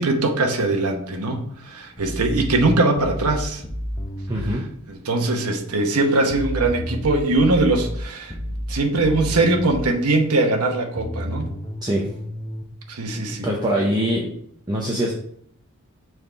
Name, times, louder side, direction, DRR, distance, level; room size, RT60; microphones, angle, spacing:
voice 1, 0.0-3.6 4.9-8.3 8.7-11.5 12.9-13.5, right 2 dB, 85° right, 3 dB, 1.0 m, -21 dB
sound 1, 2.0-4.6 6.3-9.9 11.0-12.6, equal, 20° left, 0.8 m, -30 dB
voice 2, 4.3-4.7 11.8-12.1 13.4-14.3 14.7-15.1, equal, 20° right, -2 dB, 0.7 m, -23 dB
6.3 x 3.6 x 4.6 m, 0.66 s
head